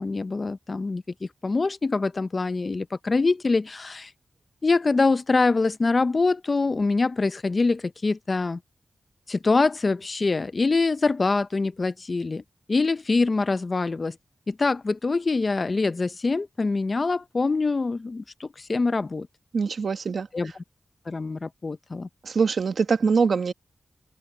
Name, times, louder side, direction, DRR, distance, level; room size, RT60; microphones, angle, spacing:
voice 1, 0.0-4.1 4.6-8.6 9.3-12.4 12.7-14.2 14.5-19.3 20.3-20.5 21.1-22.1, left 3 dB, 40° left, 0.6 m, -24 dB
voice 2, 19.5-20.3 22.2-23.5, right 5 dB, 70° right, 1.5 m, -23 dB
open air
wide cardioid pair, 90°, 0 cm